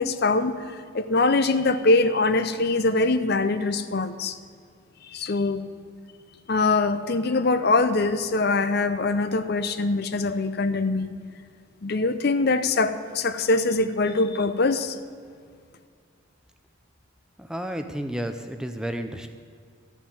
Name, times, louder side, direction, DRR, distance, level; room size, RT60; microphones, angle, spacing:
voice 1, 0.0-4.4 5.1-5.6 6.5-11.1 11.8-15.0, left 3 dB, 50° left, 11 dB, 0.7 m, -23 dB
voice 2, 17.4-19.3, right 1 dB, 5° right, 6 dB, 0.5 m, -31 dB
13.5 x 7.2 x 9.3 m, 2.2 s
head